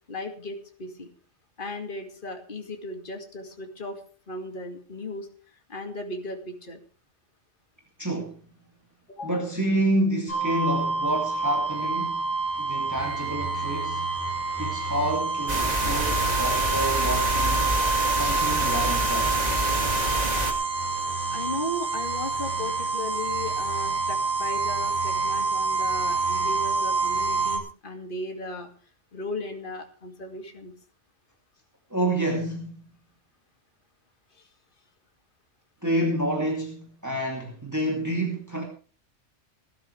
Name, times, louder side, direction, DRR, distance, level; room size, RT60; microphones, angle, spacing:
voice 1, 0.1-1.1 1.6-4.0 4.3-5.3 5.7-6.8 9.1-9.3 21.3-28.7 29.1-30.7, left 2 dB, 45° left, 2.5 m, -36 dB
voice 2, 8.0-8.4 9.2-12.3 12.6-14.1 14.6-17.7 18.1-19.3 31.9-32.8 35.8-38.6, right 1 dB, 15° right, 2.8 m, -28 dB
sound 1, 10.3-27.6, right 3 dB, 10° left, 5.2 m, -27 dB
sound 2, 15.5-20.5, right 1 dB, 30° right, 2.6 m, -27 dB
20.0 x 13.0 x 3.4 m
omnidirectional pair, 1.3 m